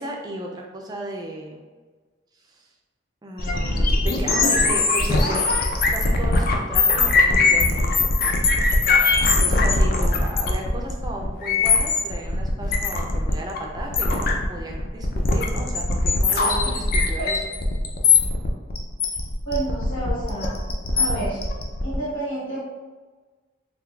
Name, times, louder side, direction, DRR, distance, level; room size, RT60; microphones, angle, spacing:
voice 1, 0.0-1.7 2.5-2.7 3.2-5.4 5.9-8.1 9.2-17.5, right 1 dB, 20° right, 0 dB, 0.4 m, -35 dB
sound 1, 3.4-22.0, left 3 dB, 45° left, 0.4 m, -21 dB
voice 2, 19.5-20.6 20.9-21.4 21.8-22.6, right 2 dB, 90° left, -9 dB, 1.0 m, -29 dB
3.7 x 3.2 x 2.3 m, 1.4 s
head